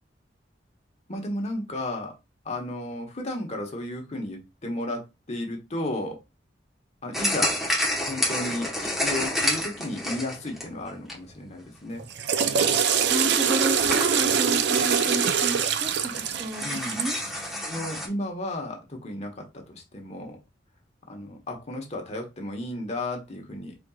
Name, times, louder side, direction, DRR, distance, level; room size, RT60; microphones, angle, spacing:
voice 1, 1.1-2.2 2.4-5.0 5.3-6.2 7.0-7.5 8.1-12.1 16.6-17.0 17.6-20.4 21.1-23.8, left 1 dB, 40° left, 1.2 m, -33 dB
sound 1, 7.1-11.5 12.0-12.1 12.9-13.0 13.2-13.3 13.8-14.3 14.7-15.5 15.9-16.0 16.1-18.1, left 1 dB, ahead, 1.1 m, -29 dB
Water / Toilet flush, 12.0-17.2, right 7 dB, 65° right, 0.5 m, -24 dB
voice 2, 13.1-17.2, right 1 dB, 25° right, 0.7 m, -31 dB
4.4 x 4.3 x 2.3 m
head